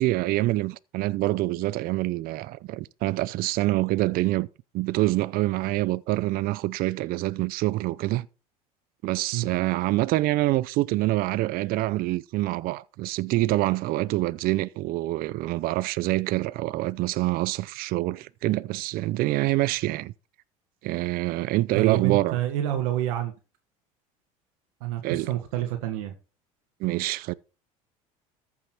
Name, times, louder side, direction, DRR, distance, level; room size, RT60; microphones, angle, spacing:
voice 1, 0.0-4.5 4.7-8.3 9.0-20.1 20.8-22.4 25.0-25.3 26.8-27.3, right 18 dB, 55° right, 0.6 m, -26 dB
voice 2, 21.7-23.3 24.8-26.1, right 12 dB, 75° right, 1.6 m, -28 dB
14.0 x 5.8 x 4.5 m
hypercardioid pair, 75°, 18 cm